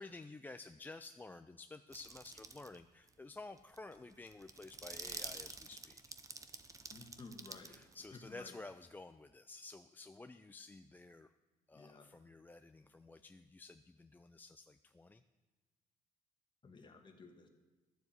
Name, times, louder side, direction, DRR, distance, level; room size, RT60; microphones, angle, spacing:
voice 1, 0.0-6.0 7.7-11.3 11.7-15.2, left 3 dB, 10° left, 9 dB, 0.3 m, -52 dB
sound 1, 1.9-2.8 3.1-3.2 3.6-8.4, right 3 dB, 20° right, 0.8 m, -49 dB
voice 2, 6.9-7.8 8.1-8.5 11.7-12.1 16.6-17.5, left 3 dB, 30° left, 4 dB, 1.7 m, -54 dB
12.5 x 7.1 x 7.9 m, 1.2 s
cardioid pair, 110°, 17 cm